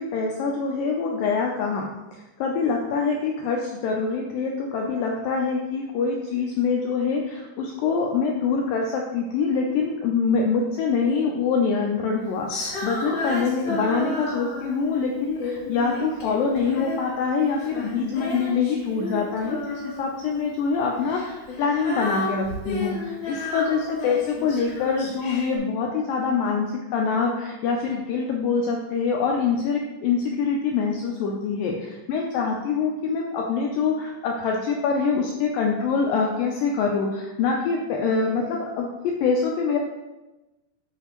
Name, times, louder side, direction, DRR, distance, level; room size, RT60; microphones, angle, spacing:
voice 1, 0.0-1.9 2.1-38.9 39.2-39.8, left 5 dB, 90° left, 0 dB, 1.9 m, -25 dB
Female singing, 12.5-14.9 15.4-17.1 17.4-20.2 21.0-25.6, left 2 dB, 60° left, 1.7 m, -32 dB
7.4 x 5.7 x 3.0 m, 1.1 s
omnidirectional pair, 4.7 m